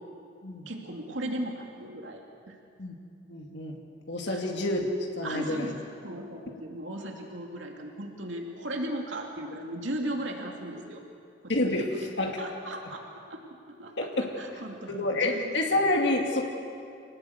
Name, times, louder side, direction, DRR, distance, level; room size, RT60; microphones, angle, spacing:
voice 1, 0.7-2.6 4.3-4.4 5.2-5.8 6.0-11.0 11.4-11.7 12.4-13.4 13.8-15.5, right 1 dB, 80° right, 1 dB, 2.7 m, -37 dB
voice 2, 3.3-3.8 4.1-4.9 5.1-5.7 11.5-12.4 14.0-14.3 14.9-16.5, left 2 dB, 65° left, 0 dB, 2.4 m, -28 dB
26.5 x 19.5 x 8.1 m, 2.4 s
head